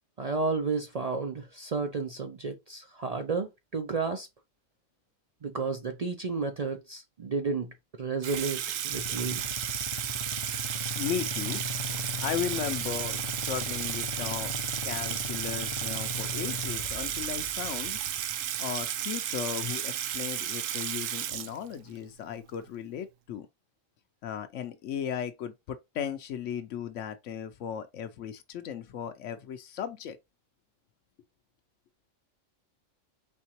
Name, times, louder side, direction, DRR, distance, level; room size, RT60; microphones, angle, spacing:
voice 1, 0.2-4.3 5.4-7.7 8.0-9.4, right 4 dB, 55° right, 0.4 m, -32 dB
Water tap faucet / Sink (filling or washing), 8.2-22.0, right 10 dB, 80° right, 1.0 m, -33 dB
Motorcycle / Idling, 8.9-18.8, left 7 dB, 55° left, 0.4 m, -39 dB
voice 2, 11.0-11.6 12.2-14.5 14.8-18.0 18.6-23.5 24.2-30.2, left 9 dB, 75° left, 0.9 m, -36 dB
4.4 x 3.5 x 2.9 m
omnidirectional pair, 1.3 m